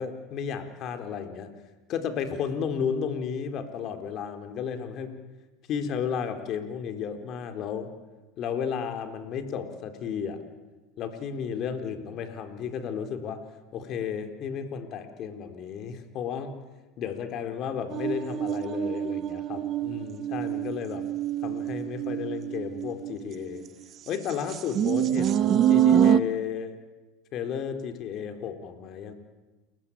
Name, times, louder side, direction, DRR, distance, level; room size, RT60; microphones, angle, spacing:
voice 1, 0.0-1.5 1.9-5.2 5.7-7.9 8.4-10.4 11.0-13.4 13.7-16.6 17.0-21.0 21.4-23.7 24.1-26.8 27.3-29.1, left 7 dB, 45° left, 6 dB, 3.9 m, -33 dB
sound 1, 17.9-23.7 24.3-26.2, right 10 dB, 40° right, 1.1 m, -26 dB
29.5 x 21.5 x 8.7 m, 1.2 s
supercardioid pair, 115°, 0 cm